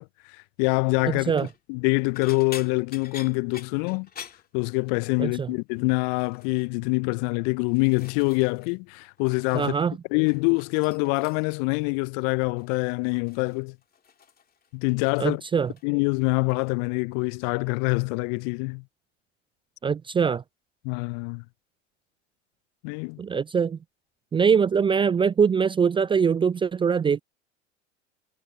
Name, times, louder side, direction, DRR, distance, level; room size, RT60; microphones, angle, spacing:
voice 1, 0.0-1.3 1.7-4.1 4.5-9.7 10.1-13.8 14.7-15.4 15.8-18.8 20.8-21.4 22.8-23.2, left 34 dB, 45° left, 0.6 m, -25 dB
sound 1, 1.3-1.6 2.1-5.2 5.5-5.8 6.2-6.7 7.3-8.8 9.0-9.9 10.2-11.7 12.6-12.9 13.3-15.3 15.6-16.1 16.5-16.7 18.0-18.1, left 7 dB, 25° left, 2.9 m, -46 dB
voice 2, 9.5-10.0 15.2-15.7 19.8-20.4 23.2-23.8 24.3-27.2, right 6 dB, 15° right, 0.4 m, -22 dB
hypercardioid pair, 85°, 38 cm